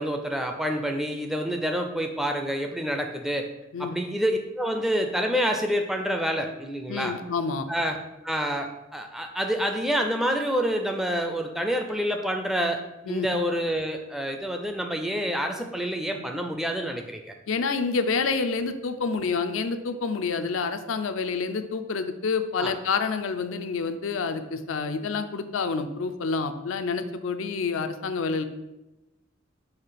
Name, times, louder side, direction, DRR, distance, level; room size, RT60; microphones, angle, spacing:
voice 1, 0.0-3.5 3.8-7.1 7.7-8.0 8.2-12.8 13.1-17.3 22.6-22.7, equal, ahead, 4 dB, 0.4 m, -27 dB
voice 2, 6.9-7.7 13.1-13.3 17.5-28.4, left 4 dB, 75° left, 9 dB, 0.5 m, -28 dB
5.7 x 3.2 x 5.7 m, 0.98 s
head